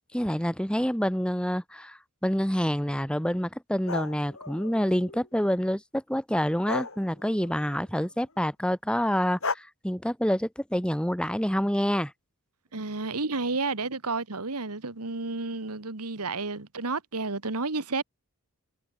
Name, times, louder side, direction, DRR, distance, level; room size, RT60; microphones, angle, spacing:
voice 1, 0.1-12.1, equal, 5° left, 3.0 m, -27 dB
sound 1, 3.9-5.4 6.7-8.1 9.4-9.5, left 4 dB, 65° left, 6.2 m, -35 dB
voice 2, 12.7-18.0, right 3 dB, 90° right, 1.9 m, -31 dB
head